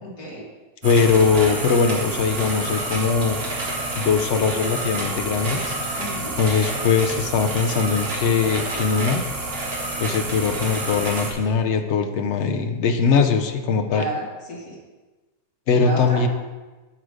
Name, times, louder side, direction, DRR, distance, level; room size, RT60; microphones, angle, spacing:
voice 1, 0.0-0.4 6.0-6.3 13.9-14.8 15.7-16.3, right 1 dB, 85° left, -5 dB, 3.1 m, -31 dB
voice 2, 0.8-3.4 3.9-5.8 6.4-9.2 10.0-14.1 15.7-16.3, left 5 dB, 60° left, 6 dB, 0.7 m, -21 dB
sound 1, 0.8-11.3, right 2 dB, 60° right, 2.2 m, -28 dB
8.9 x 6.5 x 4.9 m, 1.2 s
omnidirectional pair, 1.8 m